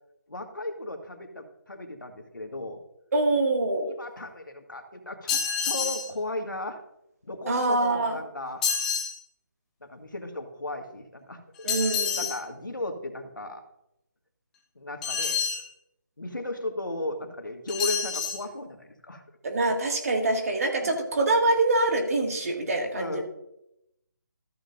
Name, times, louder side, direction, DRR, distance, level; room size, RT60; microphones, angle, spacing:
voice 1, 0.3-2.8 3.9-6.8 7.3-8.6 9.8-11.7 12.2-13.6 14.8-15.4 16.2-19.2 20.8-20.9 22.9-23.2, left 2 dB, 85° left, 4 dB, 1.7 m, -35 dB
voice 2, 3.1-3.9 7.5-8.2 11.6-12.2 19.4-23.2, right 2 dB, 50° right, 3 dB, 2.1 m, -25 dB
sound 1, 5.3-6.1 8.6-9.2 11.7-12.4 15.0-15.7 17.7-18.4, left 6 dB, 5° left, 0.4 m, -28 dB
14.0 x 7.0 x 2.6 m, 0.82 s
figure-of-eight pair, 160°, 10 cm